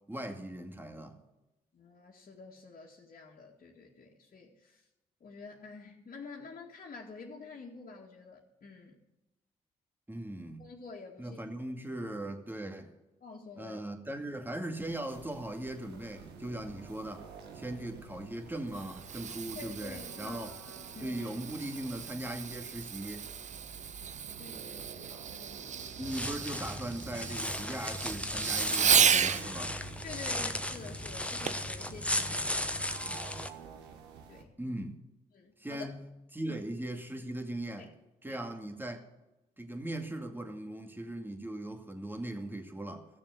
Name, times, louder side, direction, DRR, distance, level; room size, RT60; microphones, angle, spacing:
voice 1, 0.1-1.2 10.1-10.7 11.2-12.9 13.6-17.3 17.5-20.5 21.0-23.3 26.0-29.8 34.6-35.0 35.6-36.1 36.3-37.9 38.2-39.0 39.6-43.1, right 1 dB, 10° right, 2.3 m, -39 dB
voice 2, 1.7-4.8 5.2-9.0 10.6-11.4 13.2-13.8 19.3-20.4 21.0-21.2 24.4-26.1 30.0-32.7 33.0-33.4 34.3-34.5 35.3-35.9 36.5-36.6 37.8-37.9 38.2-38.4, left 4 dB, 50° left, 2.2 m, -48 dB
sound 1, 14.8-34.4, right 5 dB, 75° right, 1.5 m, -50 dB
Fireworks, 18.5-29.5 31.5-31.7 32.3-32.4, right 7 dB, 45° right, 0.7 m, -33 dB
sound 2, 26.0-33.5, left 1 dB, 5° left, 1.1 m, -36 dB
15.0 x 7.0 x 7.9 m
hypercardioid pair, 45°, 18 cm